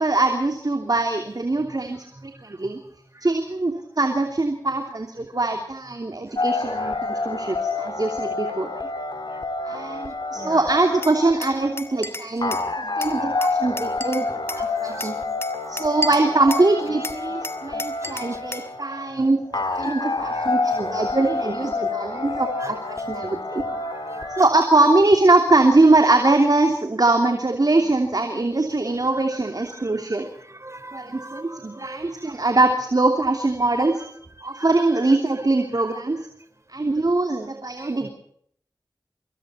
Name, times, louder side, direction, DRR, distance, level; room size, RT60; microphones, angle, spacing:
voice 1, 0.0-2.8 3.2-8.9 9.6-15.2 15.7-23.6 24.3-30.3 30.9-34.0 34.4-36.2 36.7-38.1, right 2 dB, 55° right, 5 dB, 3.0 m, -22 dB
sound 1, 6.4-24.5, left 3 dB, 70° left, 2.8 m, -28 dB
voice 2, 10.3-10.7 12.8-13.0 13.2-13.3 14.8-15.4 16.9-17.0 17.7-17.8 19.5-19.6 20.4-20.5 22.6-23.1 23.6-24.5 27.8-28.0 29.0-29.1 29.4-32.3 34.0-34.1 34.6-34.7 35.0-35.2 37.8-38.1, right 1 dB, 40° right, 9 dB, 4.6 m, -42 dB
Glass, 11.0-12.7 13.0-14.7 15.0-16.7 17.0-18.7, left 1 dB, 30° left, 2.4 m, -33 dB
26.0 x 24.0 x 4.4 m, 0.65 s
wide cardioid pair, 40°, 8 cm